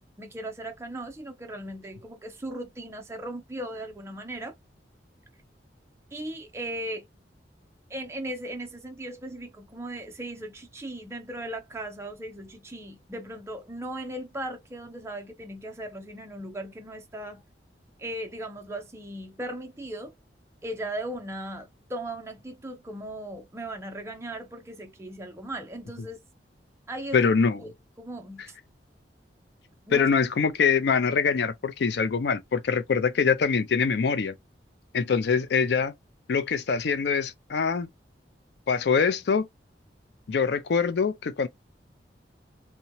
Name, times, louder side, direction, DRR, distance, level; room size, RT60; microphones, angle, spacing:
voice 1, 0.2-4.5 6.1-7.1 7.9-17.4 18.0-20.1 20.6-26.2 26.9-27.3 27.6-27.7 28.0-28.6 29.9-30.1, right 1 dB, 15° right, 0.5 m, -37 dB
voice 2, 27.1-27.6 29.9-34.3 34.9-35.9 36.3-37.9 38.7-39.5 40.3-41.5, left 5 dB, 65° left, 0.4 m, -24 dB
2.9 x 2.2 x 2.6 m
head